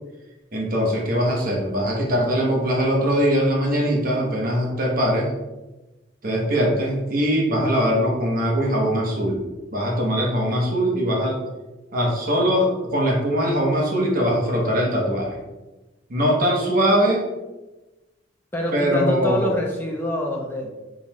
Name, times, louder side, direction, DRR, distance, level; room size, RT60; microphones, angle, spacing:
voice 1, 0.5-5.3 6.2-9.4 9.7-11.4 11.9-15.4 16.1-17.3 18.7-19.5, equal, 45° right, -2 dB, 0.9 m, -21 dB
voice 2, 18.5-20.7, left 1 dB, 10° left, 0 dB, 0.5 m, -25 dB
3.8 x 3.1 x 3.0 m, 1.1 s
head